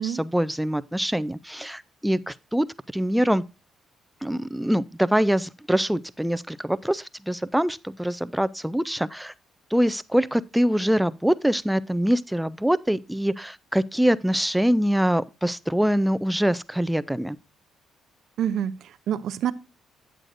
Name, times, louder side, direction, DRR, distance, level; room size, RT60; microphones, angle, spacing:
voice 1, 0.0-2.7 2.9-3.4 4.2-9.3 9.7-17.4, equal, 5° right, 0.3 m, -24 dB
voice 2, 18.4-19.5, right 9 dB, 75° right, 0.5 m, -27 dB
9.0 x 7.8 x 2.5 m
cardioid pair, 90°, 0 cm